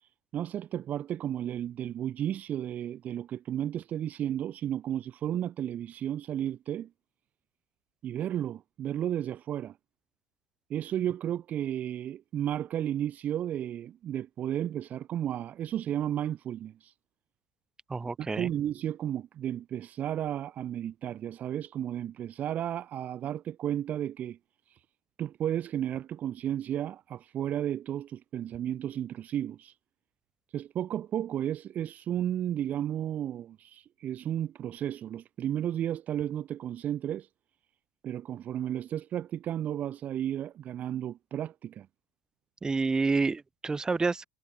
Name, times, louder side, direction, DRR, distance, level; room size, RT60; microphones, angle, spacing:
voice 1, 0.0-6.9 8.0-9.8 10.7-16.9 18.2-24.4 24.7-24.8 25.2-29.7 30.5-37.3 38.0-41.9, right 11 dB, 40° right, 2.4 m, -33 dB
voice 2, 17.9-18.5 42.6-44.3, right 4 dB, 20° right, 4.3 m, -28 dB
hypercardioid pair, 80°, 4 cm